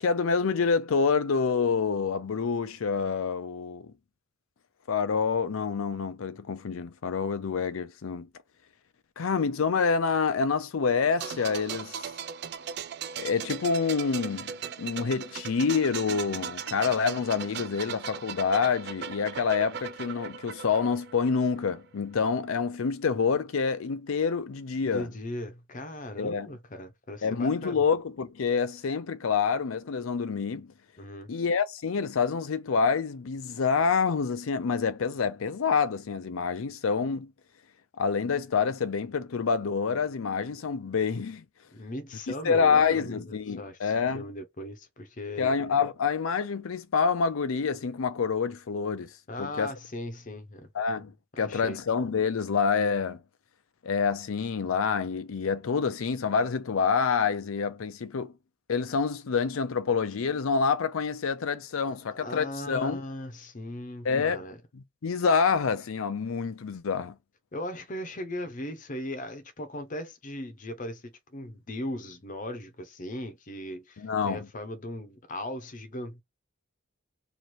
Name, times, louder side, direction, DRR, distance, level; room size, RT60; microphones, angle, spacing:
voice 1, 0.0-3.9 4.9-8.3 9.2-12.0 13.2-25.1 26.2-26.5 27.2-30.7 31.3-37.3 38.0-41.4 42.4-44.2 45.4-49.1 49.4-49.7 50.7-53.2 53.8-58.3 58.7-63.0 64.0-64.4 64.7-67.1 74.0-74.5, left 5 dB, 80° left, 0.5 m, -27 dB
sound 1, 11.2-21.8 22.1-22.3, right 7 dB, 55° right, 0.4 m, -38 dB
voice 2, 24.9-27.8 31.0-31.3 41.7-45.5 49.3-50.7 51.3-51.8 61.8-64.6 67.5-76.2, left 1 dB, 40° left, 0.7 m, -38 dB
3.1 x 2.6 x 4.2 m
head